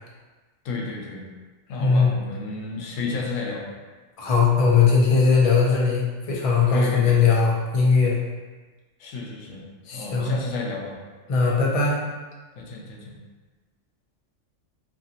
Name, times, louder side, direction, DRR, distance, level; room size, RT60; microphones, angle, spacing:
voice 1, 0.6-1.3 1.7-3.6 6.7-7.2 9.0-11.0 12.6-13.2, left 3 dB, 90° left, -1 dB, 1.0 m, -32 dB
voice 2, 1.8-2.1 4.2-8.2 9.9-10.3 11.3-12.0, left 5 dB, 60° left, -3 dB, 0.3 m, -19 dB
2.8 x 2.4 x 2.7 m, 1.3 s
omnidirectional pair, 1.3 m